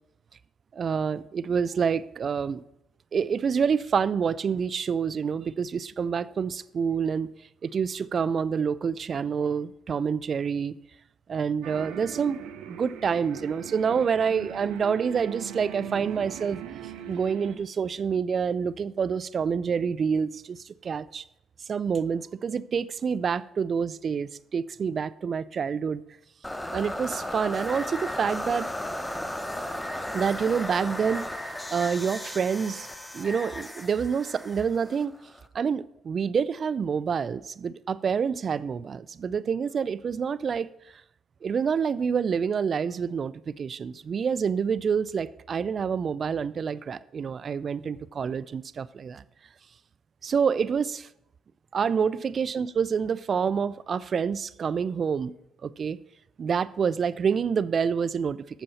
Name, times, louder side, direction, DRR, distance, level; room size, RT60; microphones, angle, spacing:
voice 1, 0.7-2.6 3.1-7.3 7.6-10.8 11.3-16.6 17.1-21.2 21.7-26.0 26.7-28.7 30.1-32.9 33.1-35.2 35.5-40.7 41.4-49.2 50.2-51.1 51.7-55.3 55.6-56.0 56.4-58.6, right 6 dB, 50° right, 0.3 m, -27 dB
sound 1, 11.6-17.6, right 9 dB, 80° right, 0.7 m, -40 dB
sound 2, 26.4-35.5, left 1 dB, 10° left, 0.8 m, -35 dB
9.0 x 6.7 x 4.1 m
supercardioid pair, 60°, 0 cm